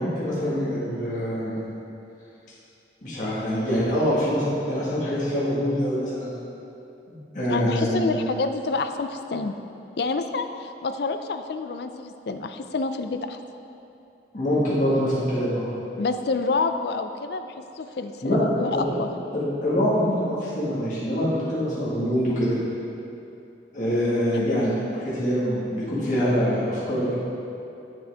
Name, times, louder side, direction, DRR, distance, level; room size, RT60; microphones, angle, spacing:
voice 1, 0.0-1.5 3.0-6.3 7.1-8.1 14.3-15.7 18.2-18.4 18.7-18.9 19.3-22.6 23.7-27.1, equal, 45° left, -9 dB, 1.7 m, -24 dB
voice 2, 7.5-9.6 10.0-13.4 16.0-17.5 17.8-19.1 24.3-24.5, left 3 dB, 65° left, 8 dB, 0.4 m, -28 dB
8.9 x 7.6 x 3.5 m, 2.7 s
head